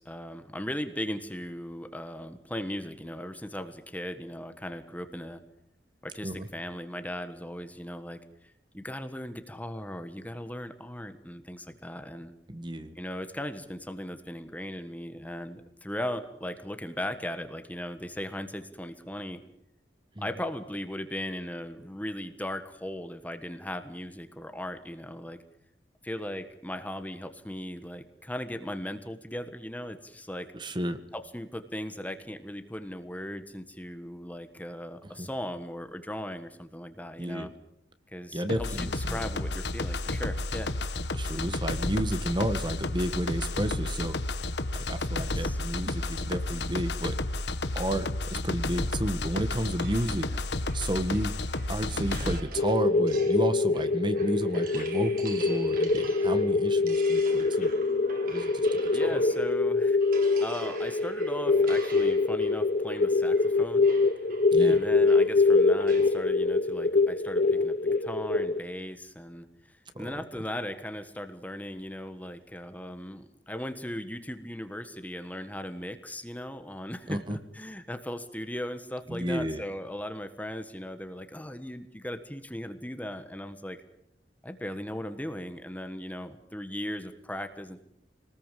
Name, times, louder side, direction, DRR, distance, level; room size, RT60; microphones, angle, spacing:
voice 1, 0.0-5.4 6.0-12.3 12.9-19.4 20.2-25.4 26.0-30.5 31.1-37.5 38.1-40.7 45.2-45.6 50.2-50.4 58.9-60.0 60.4-63.9 64.6-83.8 84.4-87.8, left 1 dB, 10° left, 8 dB, 1.4 m, -38 dB
voice 2, 12.5-12.9 30.5-31.0 35.2-35.3 37.2-37.5 38.3-39.2 41.1-44.2 44.9-47.1 47.7-50.3 50.7-51.3 51.7-57.7 58.2-59.2 64.5-64.8 70.0-70.2 77.1-77.4 79.1-79.6, right 1 dB, 25° right, 9 dB, 1.6 m, -32 dB
sound 1, 38.5-52.4, left 2 dB, 75° left, 1.4 m, -31 dB
sound 2, 49.8-59.6 60.0-66.2, right 3 dB, 55° right, 4.3 m, -46 dB
sound 3, 52.6-68.6, left 3 dB, 50° left, 0.9 m, -24 dB
26.0 x 19.5 x 7.6 m, 0.73 s
head